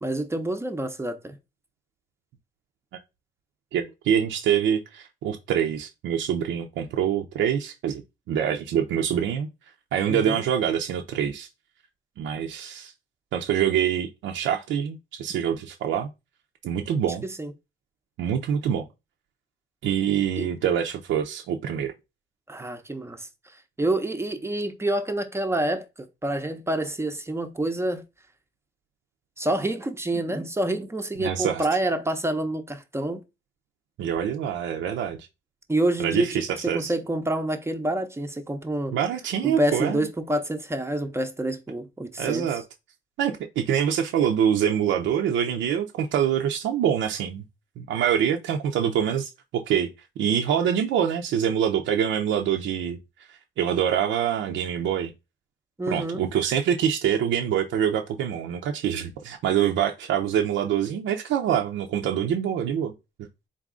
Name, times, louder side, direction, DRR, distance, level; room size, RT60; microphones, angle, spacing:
voice 1, 0.0-1.3 10.1-10.4 17.2-17.5 20.4-20.5 22.5-23.3 23.8-25.9 26.2-28.0 29.4-33.2 35.7-38.9 39.4-42.6 55.8-56.2, right 1 dB, 15° right, 0.6 m, -27 dB
voice 2, 3.7-8.0 8.3-9.5 9.9-11.5 12.2-12.9 13.3-16.1 16.6-17.2 18.2-18.9 19.8-21.9 31.2-31.6 34.0-35.3 36.0-36.9 38.9-40.1 42.2-42.6 43.2-47.4 47.8-49.9 50.2-53.0 53.3-55.1 55.9-62.9, right 9 dB, 75° right, 0.5 m, -25 dB
4.0 x 2.4 x 3.6 m
cardioid pair, 90°, 20 cm